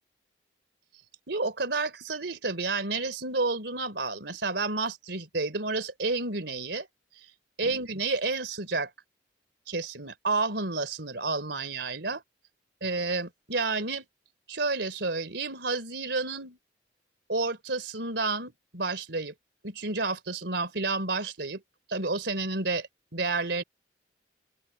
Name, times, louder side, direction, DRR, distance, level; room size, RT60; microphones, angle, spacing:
voice 1, 1.3-6.9 7.6-8.9 9.7-12.2 12.8-14.1 14.5-16.6 17.3-19.3 19.6-21.6 21.9-23.6, right 3 dB, 65° right, 3.4 m, -30 dB
open air
head